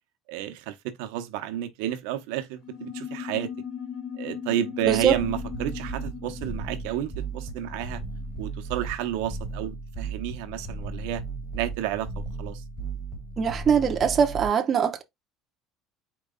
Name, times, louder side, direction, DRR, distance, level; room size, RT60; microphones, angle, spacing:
voice 1, 0.3-3.5 4.2-8.0 8.4-11.2 11.5-12.6, right 12 dB, 85° right, 0.8 m, -31 dB
sound 1, 2.6-8.5, left 7 dB, 55° left, 1.2 m, -38 dB
sound 2, 4.8-14.5, right 3 dB, 15° left, 1.7 m, -36 dB
voice 2, 13.4-15.0, right 7 dB, 30° right, 0.7 m, -22 dB
4.6 x 3.0 x 3.7 m
cardioid pair, 155°, 0 cm